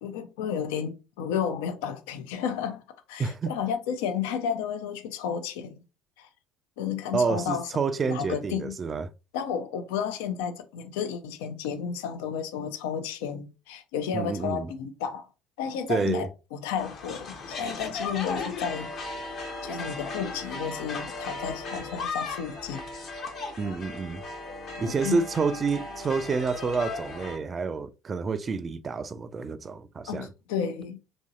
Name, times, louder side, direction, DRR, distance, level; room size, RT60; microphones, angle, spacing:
voice 1, 0.0-2.8 3.1-5.8 6.2-6.3 6.8-7.7 8.1-8.7 9.3-15.3 15.6-18.9 19.6-22.8 24.7-25.2 30.1-31.0, left 7 dB, 70° left, 0.5 m, -32 dB
voice 2, 3.2-3.5 7.1-9.1 14.1-14.7 15.9-16.3 23.6-24.2 24.8-30.3, right 4 dB, 30° right, 0.3 m, -28 dB
sound 1, 16.8-27.4, left 3 dB, 50° left, 0.8 m, -36 dB
3.0 x 2.6 x 2.4 m
figure-of-eight pair, 60°, 0 cm